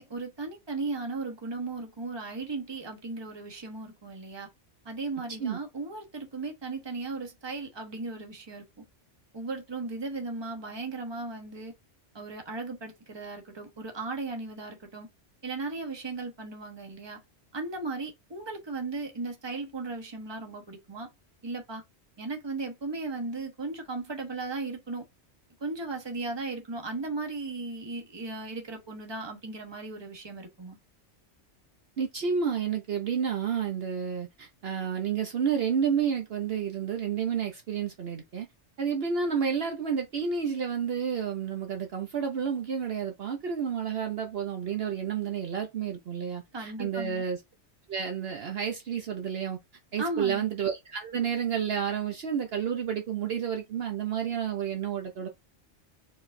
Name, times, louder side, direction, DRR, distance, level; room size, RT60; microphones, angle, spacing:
voice 1, 0.0-4.5 4.8-8.6 9.3-11.7 12.1-15.1 15.4-17.2 17.5-21.1 21.4-21.8 22.2-25.0 25.6-30.8 46.5-47.2 50.0-50.5, right 3 dB, 25° right, 1.0 m, -36 dB
voice 2, 32.0-38.5 38.8-47.4 47.9-49.6 49.9-55.3, right 7 dB, 60° right, 0.9 m, -30 dB
4.6 x 3.9 x 2.5 m
omnidirectional pair, 1.2 m